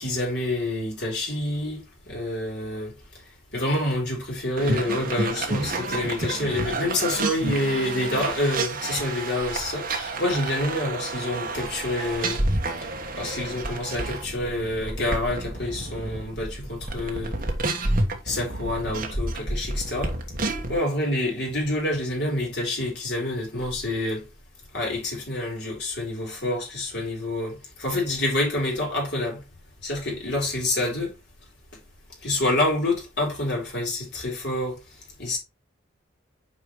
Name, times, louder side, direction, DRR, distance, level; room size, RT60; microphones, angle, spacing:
voice 1, 0.0-2.9 3.5-12.4 13.2-17.3 18.2-20.1 20.7-24.2 24.7-29.4 29.8-31.1 32.2-34.8 35.2-35.4, left 1 dB, 55° left, 4.3 m, -27 dB
sound 1, 4.6-20.8, right 2 dB, 45° right, 1.2 m, -30 dB
8.5 x 5.0 x 3.1 m
head